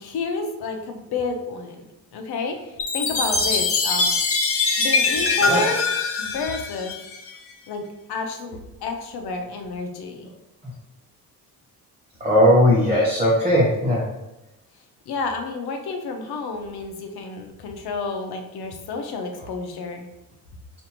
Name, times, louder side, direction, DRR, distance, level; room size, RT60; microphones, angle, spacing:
voice 1, 0.0-4.1 4.8-5.8 6.2-6.9 7.7-10.3 15.1-20.1, left 3 dB, 75° left, 4 dB, 0.7 m, -30 dB
Chime, 2.8-7.3, left 4 dB, 35° left, 0.6 m, -23 dB
voice 2, 12.2-14.1, equal, 15° right, -5 dB, 0.8 m, -18 dB
5.4 x 2.5 x 2.9 m, 0.95 s
cardioid pair, 115°, 38 cm